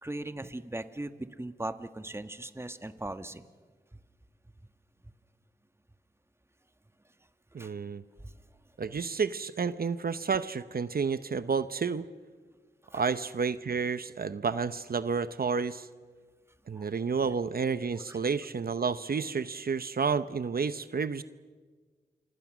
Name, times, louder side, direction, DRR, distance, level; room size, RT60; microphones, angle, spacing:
voice 1, 0.0-3.4 7.6-7.7 8.2-8.3 12.9-13.0 16.7-16.9 18.1-18.2, right 1 dB, 15° right, 10 dB, 1.3 m, -39 dB
voice 2, 7.5-8.0 8.8-12.1 12.9-15.9 16.7-21.2, right 5 dB, 65° right, 13 dB, 0.8 m, -30 dB
29.0 x 25.5 x 6.2 m, 1.5 s
wide cardioid pair, 70°, 17 cm